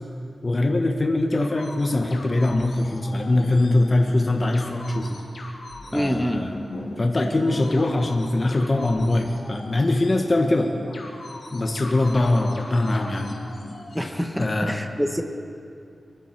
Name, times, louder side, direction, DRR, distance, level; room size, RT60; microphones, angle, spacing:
voice 1, 0.4-5.2 5.9-6.5 7.0-10.7 11.5-13.3 14.4-14.8, left 2 dB, 35° left, 2 dB, 1.1 m, -22 dB
sound 1, 1.3-14.1, left 1 dB, 70° left, 2.6 m, -39 dB
voice 2, 5.9-6.4 13.9-15.2, equal, ahead, 6 dB, 1.0 m, -26 dB
23.0 x 11.5 x 4.5 m, 2.5 s
wide cardioid pair, 120°, 0 cm